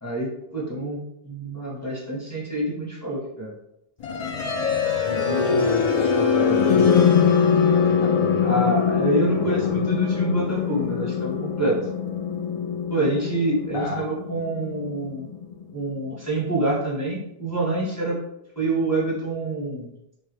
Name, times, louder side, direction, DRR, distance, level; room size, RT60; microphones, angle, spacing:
voice 1, 0.0-1.0 1.2-3.5 8.4-11.8 12.9-15.3 15.7-18.2 18.6-19.9, right 2 dB, 15° left, -6 dB, 0.9 m, -26 dB
sound 1, 4.0-15.9, left 6 dB, 55° left, 0.4 m, -22 dB
voice 2, 5.0-8.6 9.4-9.9 13.7-14.1, left 4 dB, 70° left, -1 dB, 0.9 m, -31 dB
3.5 x 2.2 x 3.2 m, 0.83 s
omnidirectional pair, 1.1 m